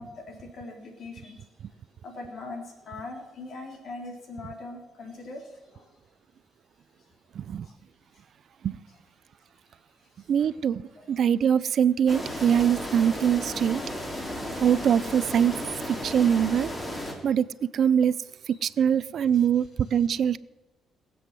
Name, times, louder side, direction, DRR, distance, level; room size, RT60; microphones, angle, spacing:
voice 1, 0.0-1.5 2.0-5.9 7.6-7.7 10.2-10.6 11.0-11.1 15.0-15.2 17.1-17.2 18.5-18.6 19.3-19.5, left 2 dB, 60° left, 2 dB, 3.8 m, -42 dB
voice 2, 10.3-13.8 14.6-15.5 15.9-16.7 17.2-18.2 18.5-20.4, right 8 dB, 60° right, 19 dB, 0.4 m, -23 dB
sound 1, 12.1-17.1, equal, 20° left, 3.3 m, -34 dB
20.0 x 7.7 x 7.6 m, 1.0 s
cardioid pair, 105°, 0 cm